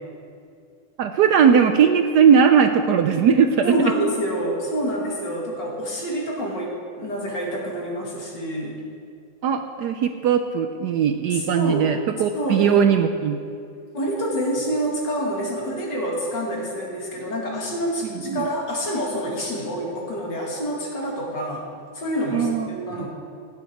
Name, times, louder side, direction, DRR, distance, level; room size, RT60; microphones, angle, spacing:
voice 1, 1.0-3.7 9.4-13.4 18.2-18.5 22.3-22.7 23.0-23.1, right 7 dB, 70° right, 7 dB, 1.1 m, -18 dB
voice 2, 3.6-8.8 11.3-12.0 12.3-12.7 13.9-21.7 21.9-23.1, equal, 60° left, -2 dB, 2.9 m, -27 dB
17.0 x 9.8 x 4.5 m, 2.4 s
omnidirectional pair, 2.1 m